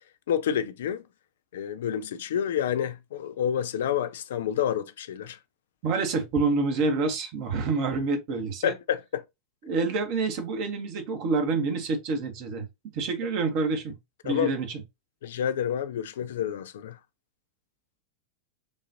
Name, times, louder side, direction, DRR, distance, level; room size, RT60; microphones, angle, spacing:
voice 1, 0.3-1.0 1.5-5.4 8.6-9.2 14.2-14.5 15.2-17.0, left 9 dB, 60° left, 0.4 m, -29 dB
voice 2, 5.8-8.7 9.6-12.6 12.9-14.0 14.2-14.8, right 4 dB, 45° right, 1.1 m, -27 dB
5.2 x 2.5 x 2.7 m
figure-of-eight pair, 90°, 0 cm